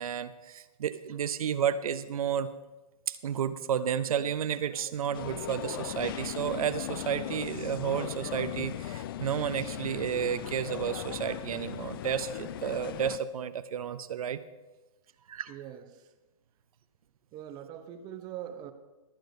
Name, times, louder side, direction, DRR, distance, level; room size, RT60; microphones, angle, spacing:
voice 1, 0.0-2.5 3.1-14.4 15.3-15.5, right 8 dB, 65° right, 12 dB, 0.6 m, -32 dB
sound 1, 5.1-13.2, left 12 dB, 35° left, 0.4 m, -38 dB
voice 2, 15.5-16.1 17.3-18.7, right 10 dB, 20° right, 9 dB, 0.7 m, -42 dB
22.0 x 8.8 x 2.7 m, 1.1 s
hypercardioid pair, 140°, 19 cm